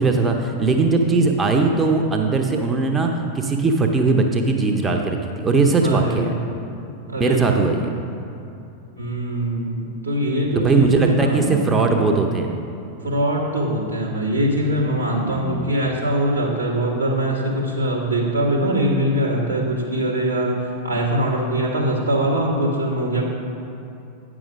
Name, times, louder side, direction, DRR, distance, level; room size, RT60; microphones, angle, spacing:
voice 1, 0.0-3.1 3.3-6.3 7.2-7.9 10.6-12.6 15.3-15.7, right 3 dB, 15° right, 3 dB, 0.6 m, -19 dB
voice 2, 5.8-6.4 7.1-7.7 9.0-11.5 13.0-23.2, right 1 dB, 85° right, -5 dB, 1.8 m, -22 dB
9.2 x 6.1 x 5.1 m, 2.7 s
figure-of-eight pair, 90°, 0 cm